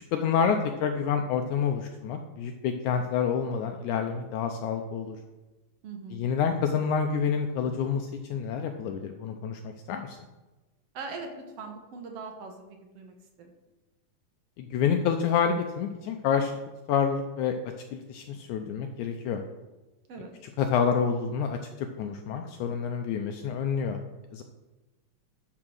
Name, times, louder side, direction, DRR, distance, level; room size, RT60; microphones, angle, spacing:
voice 1, 0.1-5.2 6.1-10.2 14.6-16.5 16.9-17.6 17.9-19.4 20.6-24.0 24.3-24.4, left 7 dB, 80° left, 5 dB, 1.9 m, -28 dB
voice 2, 5.8-6.3 10.9-11.3 11.6-13.5 20.1-20.3, right 4 dB, 60° right, 3 dB, 1.8 m, -41 dB
11.5 x 4.9 x 6.2 m, 1.1 s
omnidirectional pair, 3.9 m